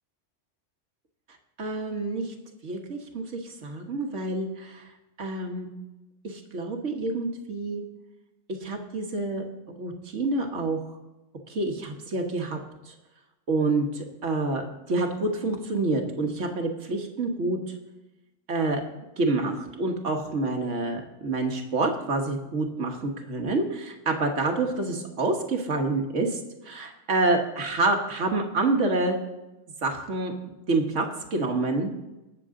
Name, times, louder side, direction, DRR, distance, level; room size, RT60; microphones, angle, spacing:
voice 1, 1.6-2.3 2.6-4.9 5.2-5.9 6.2-7.8 8.6-9.5 9.8-10.8 11.5-12.6 12.9-13.0 13.5-17.6 18.5-18.8 19.2-29.2 29.8-30.3 30.7-31.9, right 2 dB, 75° right, 3 dB, 1.7 m, -27 dB
19.5 x 6.9 x 3.8 m, 1.0 s
omnidirectional pair, 1.3 m